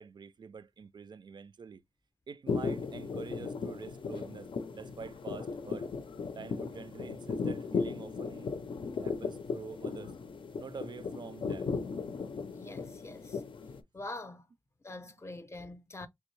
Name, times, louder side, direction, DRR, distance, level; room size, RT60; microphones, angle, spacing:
voice 1, 0.0-1.8 2.3-5.9 6.3-8.5 9.0-10.1 10.6-11.7 15.0-15.1, right 5 dB, 65° right, 0.4 m, -46 dB
sound 1, 2.5-13.8, left 5 dB, 85° left, 0.5 m, -37 dB
voice 2, 12.5-13.4 13.9-14.5 14.8-16.1, left 2 dB, 35° left, 0.5 m, -44 dB
3.4 x 2.7 x 3.1 m
wide cardioid pair, 90°, 8 cm